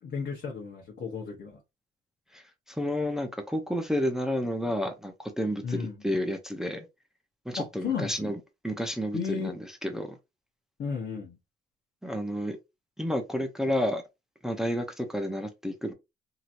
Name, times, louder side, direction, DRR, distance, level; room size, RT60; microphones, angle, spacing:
voice 1, 0.0-1.6 5.6-6.0 7.6-8.2 9.1-9.5 10.8-11.4, left 5 dB, 60° left, 1.0 m, -34 dB
voice 2, 2.7-6.9 7.5-8.3 8.6-10.1 12.0-12.6 13.0-14.0 14.4-15.9, equal, ahead, 0.6 m, -30 dB
3.0 x 2.8 x 2.5 m
cardioid pair, 90°, 20 cm